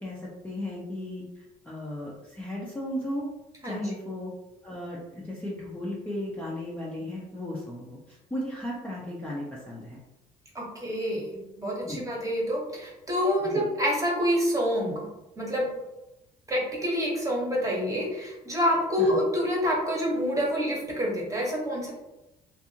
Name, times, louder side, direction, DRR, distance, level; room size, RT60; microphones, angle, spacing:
voice 1, 0.0-3.3 3.6-4.3 4.6-10.0 11.8-12.0 13.4-13.6 19.0-19.2, left 1 dB, 10° left, -6 dB, 0.5 m, -35 dB
voice 2, 3.6-3.9 10.5-15.1 15.4-15.7 16.5-21.9, equal, 20° right, -3 dB, 0.9 m, -27 dB
2.6 x 2.4 x 2.7 m, 0.94 s
cardioid pair, 110°, 17 cm